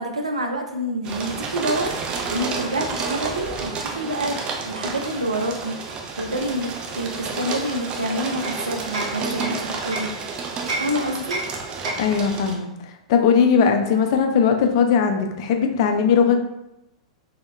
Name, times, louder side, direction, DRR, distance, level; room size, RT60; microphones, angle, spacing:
voice 1, 0.0-1.9 2.3-10.1 10.8-11.4, right 1 dB, 90° right, 4 dB, 0.3 m, -27 dB
sound 1, 1.0-12.6, right 4 dB, 30° right, 0.5 m, -30 dB
Hammer, 7.7-10.2 10.7-12.2, right 2 dB, 75° right, 0.7 m, -32 dB
voice 2, 12.0-12.7 13.1-16.4, left 6 dB, 55° left, 5 dB, 0.4 m, -19 dB
2.2 x 2.1 x 3.1 m, 0.90 s
figure-of-eight pair, 100°, 3 cm